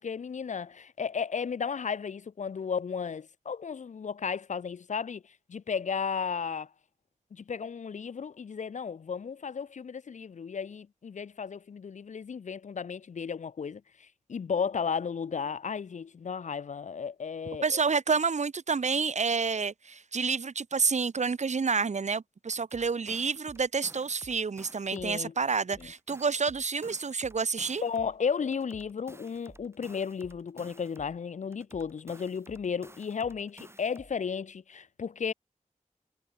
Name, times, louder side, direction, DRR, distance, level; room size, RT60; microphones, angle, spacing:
voice 1, 0.0-6.7 7.3-17.8 24.9-25.3 25.8-25.9 27.8-35.3, left 6 dB, 70° left, 0.6 m, -34 dB
voice 2, 17.6-27.8, right 5 dB, 65° right, 1.1 m, -29 dB
sound 1, 22.5-25.2 25.5-28.2 28.5-31.2 31.5-34.2, right 1 dB, 20° right, 3.3 m, -53 dB
wide cardioid pair, 95°, 13 cm